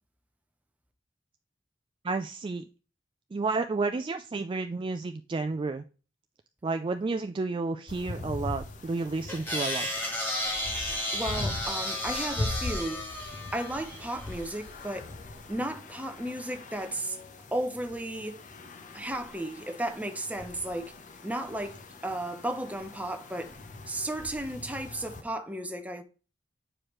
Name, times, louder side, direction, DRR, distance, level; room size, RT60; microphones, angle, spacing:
voice 1, 2.0-2.6 3.3-5.8 6.6-9.9, right 3 dB, 30° right, 0.3 m, -31 dB
sound 1, 7.9-25.2, left 2 dB, 45° left, 0.8 m, -41 dB
sound 2, 9.3-14.6, left 1 dB, 10° left, 1.4 m, -33 dB
voice 2, 11.1-13.0 13.5-15.1 15.5-17.2 17.5-18.4 18.9-20.9 21.2-23.6 23.9-26.0, right 1 dB, 10° right, 0.7 m, -34 dB
8.7 x 4.8 x 3.1 m
head